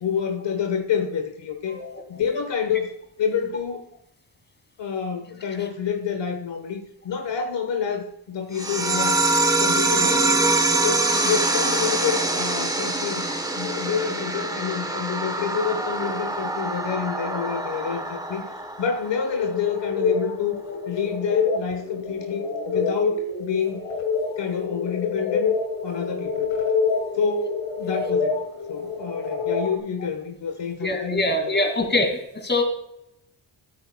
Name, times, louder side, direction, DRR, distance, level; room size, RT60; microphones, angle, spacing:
voice 1, 0.0-1.8 2.1-3.9 4.8-9.2 9.6-10.4 10.7-13.3 13.5-18.5 18.8-20.6 20.9-23.8 24.4-25.5 25.8-26.6 27.1-31.7, left 6 dB, 65° left, 4 dB, 1.2 m, -28 dB
voice 2, 1.7-2.2 30.8-32.6, left 2 dB, 20° left, 4 dB, 2.4 m, -24 dB
sound 1, 8.5-19.6, right 2 dB, 10° right, 1.0 m, -24 dB
sound 2, 19.3-29.8, left 5 dB, 90° left, 1.8 m, -27 dB
11.5 x 8.9 x 2.2 m, 0.83 s
cardioid pair, 70°, 47 cm